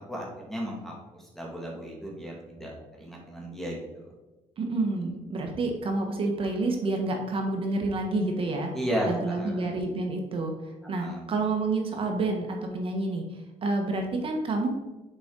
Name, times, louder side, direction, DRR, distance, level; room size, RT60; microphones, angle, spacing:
voice 1, 0.1-4.1 8.7-9.7 10.8-11.2, equal, 5° left, -3 dB, 2.0 m, -34 dB
voice 2, 4.6-8.7 9.0-10.6 10.9-14.7, right 2 dB, 45° right, 3 dB, 1.3 m, -29 dB
6.8 x 5.2 x 3.8 m, 1.1 s
cardioid pair, 110°, 13 cm